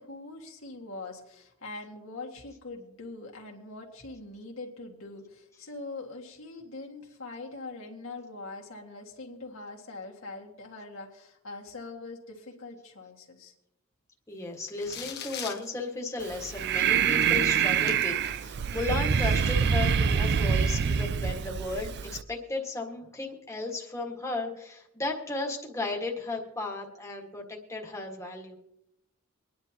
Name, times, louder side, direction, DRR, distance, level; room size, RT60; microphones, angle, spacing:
voice 1, 0.0-13.5, left 3 dB, 70° left, -1 dB, 1.9 m, -43 dB
voice 2, 14.3-28.6, left 2 dB, 15° left, -1 dB, 1.7 m, -35 dB
sound 1, 14.7-15.7 16.5-16.6 17.2-18.4 18.8-19.5, left 8 dB, 50° left, 1.1 m, -42 dB
Breathing, 16.2-22.2, right 7 dB, 55° right, 0.4 m, -26 dB
24.5 x 10.5 x 2.9 m, 0.83 s
head